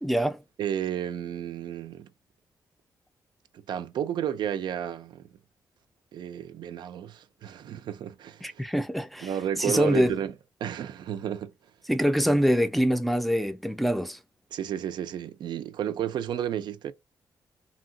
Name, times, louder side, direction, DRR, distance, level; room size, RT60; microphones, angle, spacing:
voice 1, 0.0-0.4 8.4-9.3 9.6-10.1 11.9-14.2, equal, ahead, 0.4 m, -24 dB
voice 2, 0.6-2.1 3.5-5.3 6.1-8.6 9.2-10.4 10.6-11.5 14.5-16.9, right 10 dB, 80° right, 0.4 m, -32 dB
2.8 x 2.6 x 2.7 m
cardioid pair, 105°, 8 cm